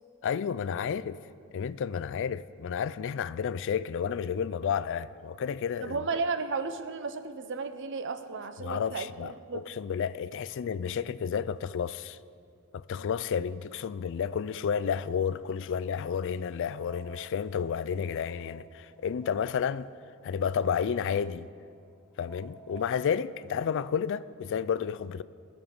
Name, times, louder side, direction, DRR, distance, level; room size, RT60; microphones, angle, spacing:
voice 1, 0.2-1.2 1.5-6.0 8.6-12.2 12.7-19.9 20.2-21.5 22.2-25.2, left 7 dB, 60° left, 0.3 m, -31 dB
voice 2, 5.8-9.6, right 4 dB, 60° right, 0.7 m, -34 dB
sound 1, 16.6-23.7, right 1 dB, 5° left, 0.7 m, -52 dB
20.0 x 7.0 x 5.4 m
head